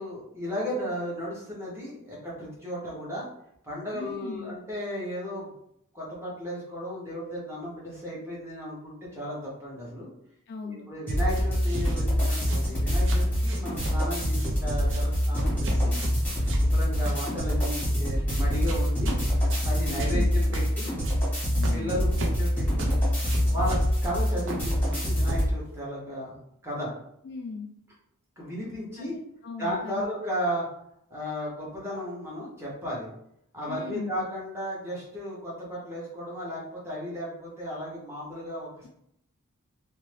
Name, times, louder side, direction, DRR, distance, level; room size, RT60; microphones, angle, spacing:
voice 1, 0.0-3.3 3.6-5.5 5.9-10.1 10.6-16.0 16.5-19.2 19.6-20.9 21.7-22.9 23.5-26.9 28.4-29.2 29.6-30.7 31.1-33.1 33.5-38.9, equal, 10° right, -6 dB, 1.1 m, -34 dB
voice 2, 3.9-4.6 10.5-10.9 19.9-20.4 21.5-22.0 27.2-27.7 29.1-30.1 33.7-34.2, left 4 dB, 50° left, 3 dB, 0.3 m, -38 dB
sound 1, 11.1-25.5, equal, 5° left, 1.2 m, -25 dB
sound 2, 11.4-12.0 12.4-12.7 13.0-14.0 14.3-14.6 14.8-15.1 15.4-16.7 17.1-17.2 17.6-18.0 18.7-19.2 19.5-19.7 20.0-20.2 20.5-20.7 21.0-21.2 21.6-22.4 22.8-23.0 23.2-24.2 24.5-25.5, right 2 dB, 60° right, 0.5 m, -38 dB
2.7 x 2.1 x 3.2 m, 0.73 s
head